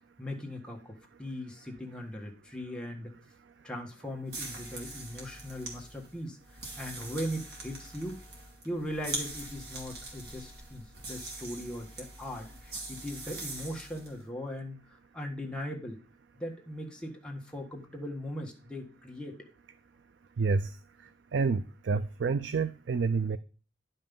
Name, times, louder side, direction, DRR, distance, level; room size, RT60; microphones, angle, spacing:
voice 1, 0.2-3.1 3.6-6.4 6.8-8.2 8.6-16.0 16.3-19.5, equal, 5° left, 0 dB, 1.5 m, -39 dB
sound 1, 4.2-14.1, right 2 dB, 60° right, 3.0 m, -42 dB
voice 2, 20.4-20.7 21.3-23.4, right 4 dB, 80° right, 13 dB, 0.4 m, -28 dB
11.0 x 5.4 x 5.4 m, 0.36 s
head